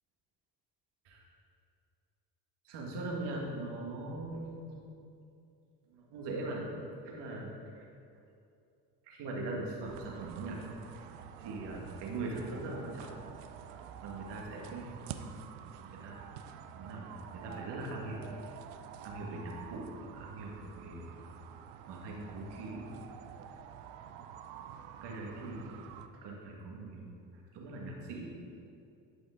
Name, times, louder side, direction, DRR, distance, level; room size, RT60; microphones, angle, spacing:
voice 1, 2.6-4.8 5.9-6.7 7.0-7.9 9.0-10.7 11.4-13.1 13.6-15.5 15.8-16.3 16.7-18.2 18.6-18.8 19.0-21.3 21.9-22.9 25.0-27.1 27.5-28.3, right 2 dB, 70° right, -1 dB, 1.9 m, -41 dB
sound 1, 9.9-26.1, right 8 dB, 90° right, 0.6 m, -48 dB
11.5 x 5.2 x 3.8 m, 2.6 s
supercardioid pair, 90°, 44 cm